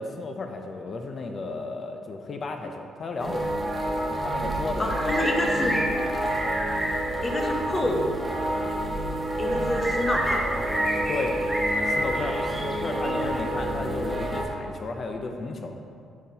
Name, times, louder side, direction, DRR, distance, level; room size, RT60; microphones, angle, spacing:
voice 1, 0.0-3.5 4.1-5.1 5.4-5.5 9.5-9.8 11.1-11.4 11.8-15.8, left 3 dB, 45° left, 4 dB, 0.4 m, -34 dB
sound 1, 3.2-14.4, right 1 dB, 15° right, 1.0 m, -27 dB
voice 2, 4.8-5.8 7.2-8.1 9.4-10.5 12.9-13.2, left 1 dB, 30° left, 0 dB, 0.9 m, -28 dB
10.5 x 3.8 x 2.8 m, 2.3 s
cardioid pair, 90°, 0 cm